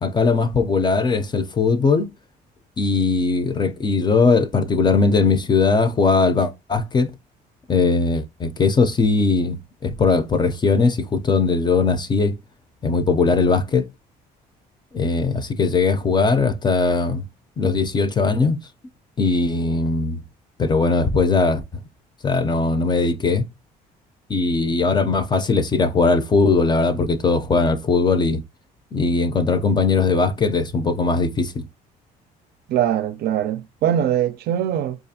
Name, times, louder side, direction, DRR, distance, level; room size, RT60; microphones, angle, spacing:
voice 1, 0.0-2.1 2.8-7.1 7.7-12.3 12.8-13.9 14.9-17.2 17.6-18.6 19.2-20.2 20.6-21.6 22.2-23.4 24.3-28.4 28.9-31.6, left 4 dB, 25° left, 0.5 m, -19 dB
voice 2, 32.7-35.0, right 10 dB, 70° right, 0.4 m, -22 dB
4.7 x 2.5 x 2.7 m
cardioid pair, 110°, 17 cm